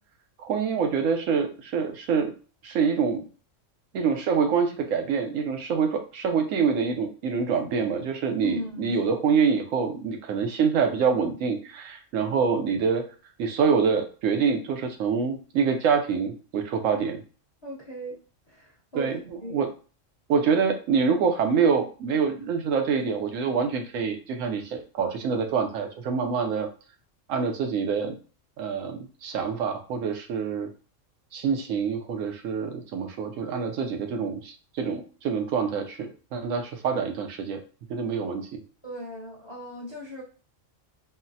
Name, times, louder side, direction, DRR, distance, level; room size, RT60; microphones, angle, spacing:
voice 1, 0.4-2.3 2.6-3.2 3.9-13.0 13.4-17.2 18.9-19.7 20.3-26.7 27.3-28.1 28.6-30.7 31.3-37.6 37.9-38.6, right 6 dB, 85° right, 5 dB, 1.0 m, -26 dB
voice 2, 8.4-9.0 17.6-18.2 18.5-19.1 19.4-19.6 38.8-40.2, equal, 25° left, -5 dB, 0.6 m, -37 dB
3.9 x 2.0 x 2.6 m, 0.37 s
omnidirectional pair, 1.3 m